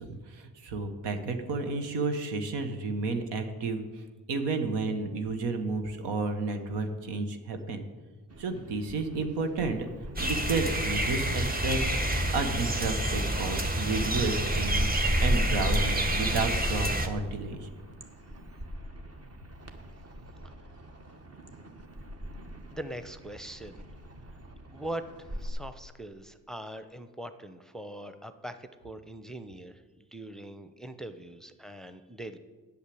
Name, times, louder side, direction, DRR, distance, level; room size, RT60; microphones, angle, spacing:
voice 1, 0.0-7.9 8.4-9.9 10.2-17.7, right 3 dB, 85° right, 6 dB, 1.2 m, -32 dB
sound 1, 8.3-25.5, right 1 dB, 35° right, 1.5 m, -46 dB
sound 2, 10.2-17.1, right 1 dB, 20° right, 1.4 m, -27 dB
voice 2, 22.7-23.8 24.7-32.4, right 1 dB, ahead, 10 dB, 0.7 m, -42 dB
8.3 x 6.6 x 8.4 m, 1.4 s
supercardioid pair, 55°, 40 cm